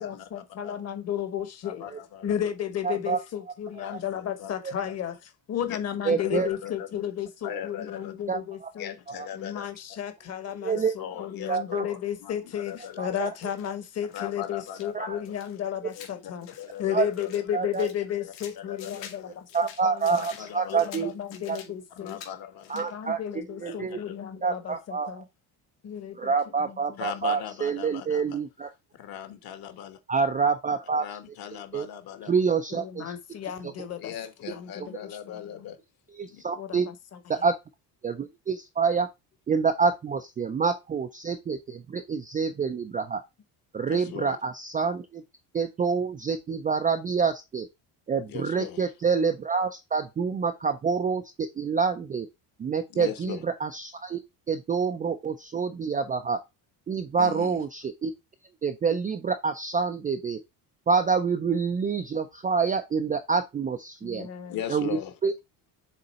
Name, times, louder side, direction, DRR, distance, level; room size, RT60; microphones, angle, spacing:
voice 1, 0.0-1.8 2.2-5.2 5.5-8.9 9.3-16.5 16.8-19.5 19.8-20.2 20.7-22.2 22.7-25.2 25.8-26.3 26.6-26.8 32.8-34.1 34.4-35.4 36.6-36.9 64.0-64.6, left 10 dB, 35° left, 1.1 m, -33 dB
voice 2, 1.6-2.4 3.8-4.5 4.8-5.0 5.6-5.8 6.2-7.1 7.4-8.1 8.8-10.0 10.7-13.2 14.0-15.4 16.0-17.4 18.2-19.4 20.2-21.1 21.9-22.9 23.6-24.2 27.0-28.4 28.9-30.2 31.0-32.3 34.0-35.8 36.3-36.4 43.9-44.4 48.3-48.8 52.9-53.4 57.2-57.6 64.5-65.1, left 10 dB, 55° left, 1.4 m, -39 dB
voice 3, 2.8-3.2 3.9-4.0 4.6-4.7 6.1-6.5 8.3-8.7 9.2-9.3 10.6-10.9 11.5-11.9 13.0-13.3 14.9-15.2 16.9-17.1 17.5-17.9 19.5-21.1 21.5-21.6 22.7-24.0 24.4-25.2 26.2-28.7 30.1-31.1 31.7-31.9 32.3-33.1 33.6-33.7 36.1-36.9 37.3-37.5 38.0-39.1 39.5-43.2 43.7-45.2 45.5-47.7 48.1-52.3 52.6-54.2 54.5-56.4 56.9-58.1 58.6-60.4 60.9-64.3 64.7-64.9 65.2-65.3, right 5 dB, 20° right, 0.3 m, -27 dB
sound 1, 12.6-12.9 13.3-14.3 14.7-14.9 15.3-17.4 17.7-19.2 19.5-21.7 22.0-22.3 22.6-23.0, left 8 dB, 80° left, 2.4 m, -47 dB
6.8 x 3.9 x 4.1 m
cardioid pair, 180°, 43 cm